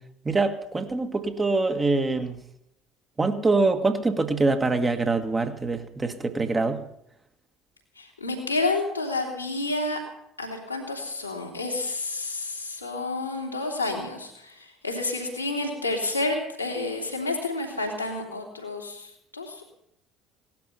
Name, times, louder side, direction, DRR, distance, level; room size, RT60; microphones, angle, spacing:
voice 1, 0.2-2.4 3.2-6.8, right 3 dB, 20° right, 1.7 m, -24 dB
voice 2, 8.0-10.0 10.4-19.6, left 2 dB, 90° left, 2.9 m, -30 dB
18.0 x 12.0 x 5.9 m
figure-of-eight pair, 60°, 0 cm